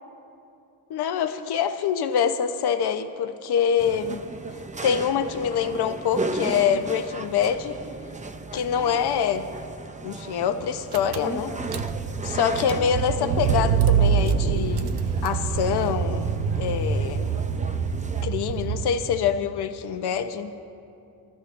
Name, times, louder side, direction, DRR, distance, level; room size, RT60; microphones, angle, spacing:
voice 1, 0.9-4.2 4.8-7.8 8.5-9.5 10.0-11.5 12.2-16.3 16.6-17.3 18.2-20.7, left 8 dB, 80° left, 8 dB, 1.0 m, -25 dB
sound 1, 3.8-18.2, right 3 dB, 20° right, 0.7 m, -36 dB
Car / Engine, 10.6-10.7 10.9-19.3, right 6 dB, 85° right, 0.9 m, -25 dB
27.5 x 14.0 x 2.6 m, 2.6 s
cardioid pair, 100°, 38 cm